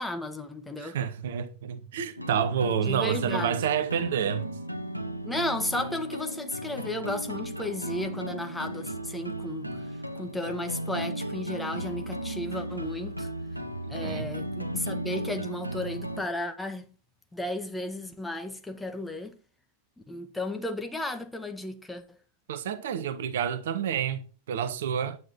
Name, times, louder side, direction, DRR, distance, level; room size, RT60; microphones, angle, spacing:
voice 1, 0.0-1.0 2.8-3.6 5.2-9.9 10.1-13.3 13.9-16.9 17.3-19.4 20.1-22.2, left 1 dB, 5° left, 1.7 m, -34 dB
voice 2, 0.8-4.5 14.0-14.3 22.5-25.2, right 8 dB, 60° right, 1.4 m, -29 dB
sound 1, 2.2-16.2, right 1 dB, 90° right, 1.1 m, -35 dB
9.9 x 9.5 x 4.4 m
figure-of-eight pair, 90°, 0 cm